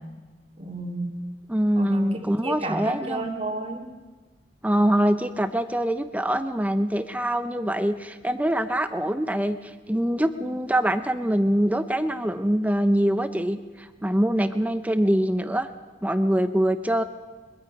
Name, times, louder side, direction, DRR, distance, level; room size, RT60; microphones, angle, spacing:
voice 1, 0.6-1.2 1.7-2.1 2.4-3.9, right 2 dB, 35° right, 2 dB, 2.4 m, -32 dB
voice 2, 1.5-3.3 4.6-9.6 9.9-15.7 16.0-17.0, right 1 dB, 10° right, 9 dB, 0.7 m, -24 dB
23.0 x 23.0 x 5.3 m, 1.3 s
head